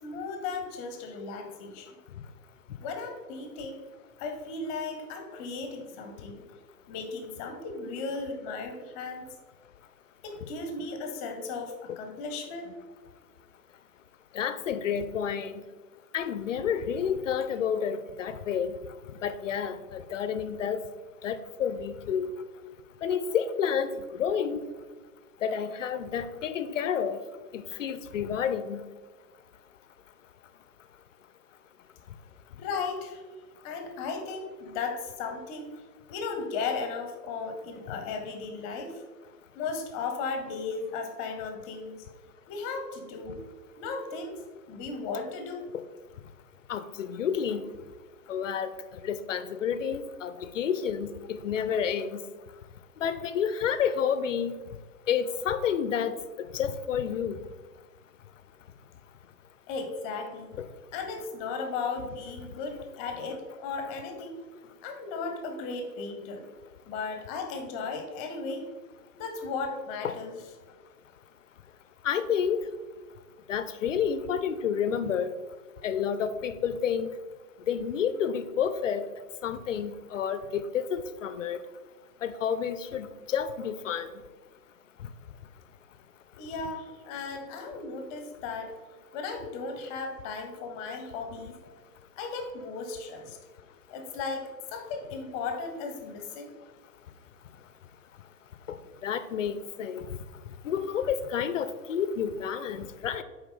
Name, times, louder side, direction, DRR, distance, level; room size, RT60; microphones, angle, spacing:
voice 1, 0.0-2.0 2.8-3.8 4.2-6.4 6.9-9.3 10.2-12.7 32.6-33.2 33.6-35.7 36.1-39.0 39.5-42.1 42.5-43.4 43.8-45.6 59.7-60.5 60.9-64.4 64.8-66.5 66.9-68.7 69.2-70.4 86.4-88.7 89.1-91.6 92.2-93.4 93.9-96.5, left 4 dB, 25° left, 5 dB, 0.8 m, -36 dB
voice 2, 14.3-15.5 16.1-18.7 19.2-20.8 21.2-22.3 23.0-24.7 25.4-27.2 27.5-28.8 46.7-47.6 48.3-48.7 49.0-52.2 53.0-54.5 55.1-56.1 56.5-57.4 72.0-72.6 73.5-75.3 75.8-77.1 77.7-79.0 79.4-81.6 82.2-84.1 99.0-100.1 100.6-103.2, left 7 dB, 50° left, 12 dB, 0.5 m, -29 dB
6.8 x 4.6 x 3.8 m, 1.4 s
figure-of-eight pair, 115°, 48 cm